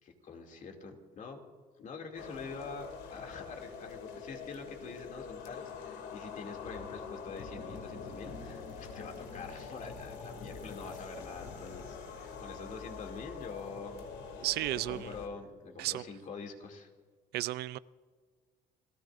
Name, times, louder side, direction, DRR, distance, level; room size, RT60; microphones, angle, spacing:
voice 1, 0.0-1.4 1.8-14.1 14.3-16.9, left 4 dB, 50° left, 2 dB, 2.5 m, -45 dB
sound 1, 2.2-15.3, left 5 dB, 85° left, 2.5 m, -45 dB
voice 2, 14.4-15.1 15.8-16.0 17.3-17.8, right 16 dB, 75° right, 18 dB, 0.4 m, -33 dB
28.0 x 14.5 x 2.5 m, 1.5 s
cardioid pair, 110°, 17 cm